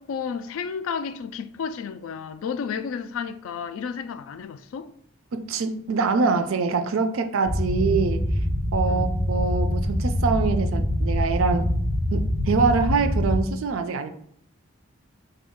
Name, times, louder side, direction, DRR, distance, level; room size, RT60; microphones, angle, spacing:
voice 1, 0.0-4.9 8.9-9.1, left 6 dB, 75° left, 0.3 m, -32 dB
voice 2, 5.3-8.3 8.7-11.7 12.1-14.1, right 4 dB, 75° right, 0.4 m, -24 dB
sound 1, 7.4-13.4, left 1 dB, 15° right, 0.9 m, -24 dB
4.1 x 2.3 x 3.5 m
head